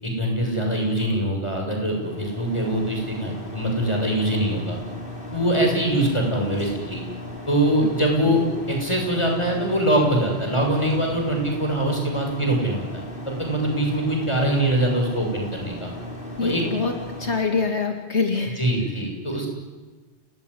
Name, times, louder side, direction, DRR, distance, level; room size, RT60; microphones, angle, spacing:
voice 1, 0.0-4.8 5.3-7.0 7.5-8.4 8.7-15.9 16.4-16.6 18.6-19.5, right 1 dB, 25° left, 1 dB, 6.9 m, -23 dB
sound 1, 1.8-17.4, left 1 dB, 50° left, 5.2 m, -37 dB
voice 2, 16.4-16.9 17.2-18.6, left 4 dB, 75° left, 4 dB, 2.5 m, -24 dB
29.5 x 19.5 x 10.0 m, 1.3 s
omnidirectional pair, 1.2 m